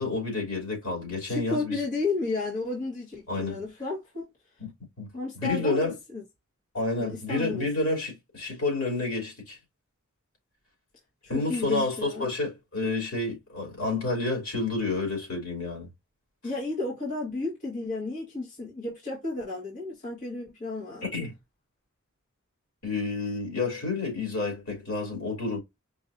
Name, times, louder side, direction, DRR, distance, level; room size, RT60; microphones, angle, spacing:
voice 1, 0.0-1.8 3.3-3.6 4.6-4.7 5.0-5.1 5.3-5.9 6.7-9.6 11.3-15.9 21.0-21.3 22.8-25.6, left 3 dB, 75° left, 2.9 m, -29 dB
voice 2, 1.2-4.3 5.1-6.2 7.0-7.7 11.3-12.3 16.4-21.3, left 3 dB, 40° left, 1.5 m, -32 dB
4.9 x 2.7 x 2.6 m
head